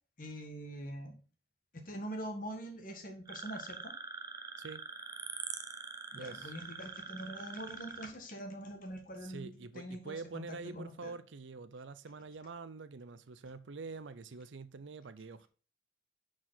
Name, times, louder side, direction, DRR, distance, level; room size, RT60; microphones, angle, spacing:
voice 1, 0.2-1.1 1.7-3.9 6.1-11.1, equal, 45° left, 1.7 m, -44 dB
sound 1, 3.3-8.1, right 4 dB, 20° right, 0.8 m, -44 dB
voice 2, 6.2-6.5 9.2-15.5, right 4 dB, 80° right, 0.6 m, -46 dB
10.0 x 4.8 x 4.0 m
head